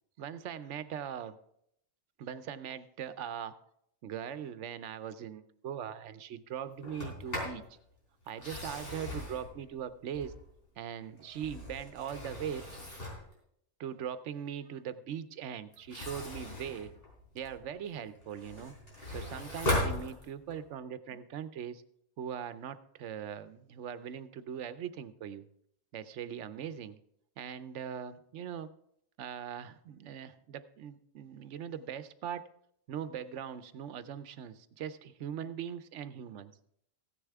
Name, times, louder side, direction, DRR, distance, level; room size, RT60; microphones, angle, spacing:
voice 1, 0.2-1.4 2.2-3.5 4.0-7.6 8.3-10.3 10.8-12.6 13.8-16.9 17.3-18.7 19.1-21.8 22.2-25.4 25.9-27.0 27.4-28.7 29.2-32.4 32.9-36.5, right 8 dB, 85° right, 13 dB, 1.0 m, -40 dB
Sliding door, 6.8-7.6 8.3-10.6 11.2-13.3 15.7-17.7 18.1-20.6, left 1 dB, 55° left, 4.1 m, -38 dB
15.0 x 9.9 x 3.5 m, 0.73 s
omnidirectional pair, 1.2 m